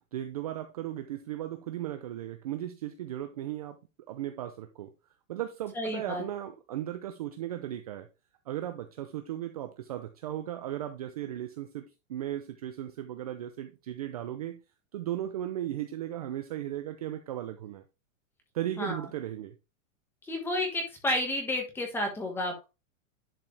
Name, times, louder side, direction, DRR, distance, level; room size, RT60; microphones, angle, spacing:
voice 1, 0.1-3.8 4.1-4.9 5.3-8.1 8.5-14.6 14.9-17.8 18.5-19.5, right 12 dB, 30° right, 0.5 m, -36 dB
voice 2, 5.7-6.2 18.8-19.0 20.2-22.6, left 1 dB, 5° left, 1.5 m, -31 dB
11.0 x 4.8 x 3.3 m
supercardioid pair, 175°, 39 cm